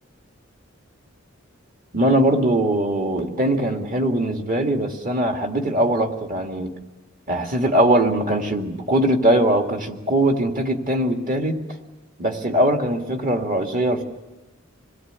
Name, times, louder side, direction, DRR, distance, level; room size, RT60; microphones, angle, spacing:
voice 1, 1.9-6.7 7.3-11.6 12.2-14.0, right 1 dB, 40° right, 3 dB, 2.2 m, -21 dB
26.5 x 19.0 x 8.3 m, 1.1 s
head